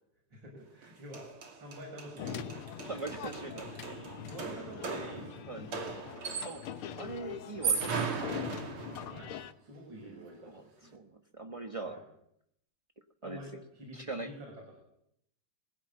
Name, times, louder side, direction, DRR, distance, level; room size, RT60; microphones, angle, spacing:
voice 1, 0.3-2.6 4.3-6.1 9.1-9.3 9.6-11.0 11.8-12.0 13.2-14.8, equal, 55° right, -1 dB, 7.2 m, -48 dB
sound 1, 0.8-6.8 7.4-9.2, right 5 dB, 75° right, 3.5 m, -37 dB
sound 2, 2.2-9.5, left 9 dB, 75° left, 1.9 m, -43 dB
voice 2, 2.9-4.0 5.5-5.6 6.4-6.6 6.9-8.4 10.0-12.0 13.2-13.4 13.9-14.3, right 3 dB, 25° right, 5 dB, 0.7 m, -42 dB
21.0 x 16.5 x 9.0 m, 0.76 s
omnidirectional pair, 2.4 m